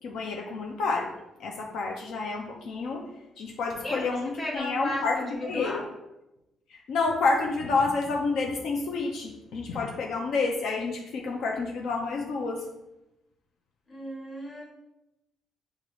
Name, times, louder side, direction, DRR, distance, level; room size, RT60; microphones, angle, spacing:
voice 1, 0.0-1.1 1.4-3.0 3.4-5.8 6.7-12.6, left 3 dB, 75° left, 0 dB, 0.6 m, -29 dB
voice 2, 3.8-5.8 13.9-14.6, left 2 dB, 25° left, -3 dB, 1.3 m, -35 dB
6.5 x 2.5 x 3.1 m, 0.93 s
cardioid pair, 125°, 0 cm